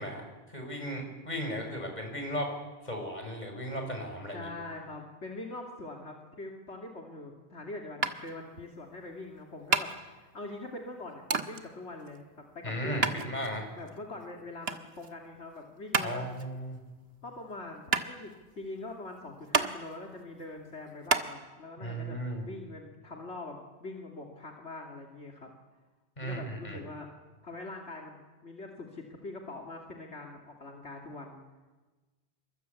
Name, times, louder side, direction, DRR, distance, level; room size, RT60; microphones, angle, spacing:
voice 1, 0.0-2.5 2.8-4.5 12.6-13.7 16.0-16.8 21.8-22.5 26.2-26.8, equal, 40° left, 3 dB, 6.4 m, -36 dB
voice 2, 4.3-12.2 12.5-13.2 13.5-16.3 17.2-25.5 26.2-27.1 27.4-31.5, left 2 dB, 80° left, 1 dB, 3.0 m, -43 dB
sound 1, 8.0-21.3, right 4 dB, 65° right, 1.6 m, -33 dB
28.0 x 23.0 x 8.4 m, 1.2 s
omnidirectional pair, 1.1 m